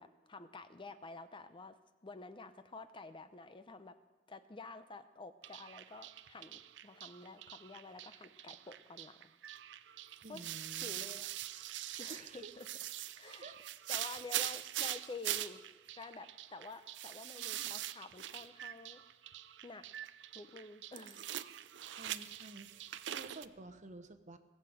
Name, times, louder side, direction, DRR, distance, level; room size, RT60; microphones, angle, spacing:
voice 1, 0.0-1.8 2.0-4.0 4.3-9.2 10.3-10.4 10.8-11.3 12.0-12.7 13.2-13.4 13.9-19.0 19.6-19.9 20.3-21.3 21.9-22.0, left 3 dB, 25° left, 10 dB, 0.6 m, -50 dB
sound 1, 5.4-23.5, right 13 dB, 70° right, 0.5 m, -43 dB
voice 2, 10.2-11.2 12.1-12.5 13.4-13.6 17.5-17.7 21.8-24.4, right 2 dB, 40° right, 9 dB, 1.0 m, -52 dB
18.5 x 7.7 x 7.9 m, 1.2 s
head